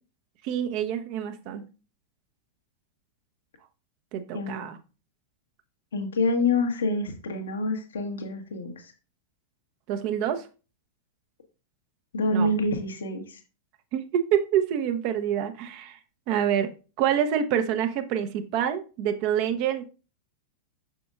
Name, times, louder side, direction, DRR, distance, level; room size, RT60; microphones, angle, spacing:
voice 1, 0.4-1.6 4.1-4.8 9.9-10.4 12.3-12.5 13.9-16.0 16.3-16.7 17.0-19.8, right 9 dB, 45° right, 9 dB, 0.9 m, -26 dB
voice 2, 4.3-4.6 5.9-8.9 12.1-13.4, left 2 dB, 70° left, 5 dB, 1.2 m, -27 dB
7.5 x 6.2 x 2.5 m, 0.33 s
figure-of-eight pair, 95°, 0 cm